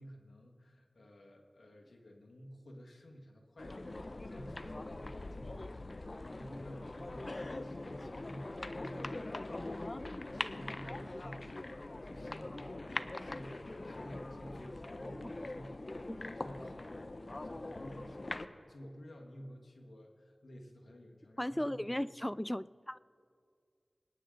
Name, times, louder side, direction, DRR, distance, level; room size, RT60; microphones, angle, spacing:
voice 1, 0.0-22.1, equal, 90° left, 1.7 m, -52 dB
sound 1, 3.6-18.5, left 2 dB, 50° left, 0.6 m, -42 dB
voice 2, 21.4-23.0, left 1 dB, 15° left, 0.3 m, -36 dB
25.0 x 10.0 x 3.9 m
wide cardioid pair, 40°, 0 cm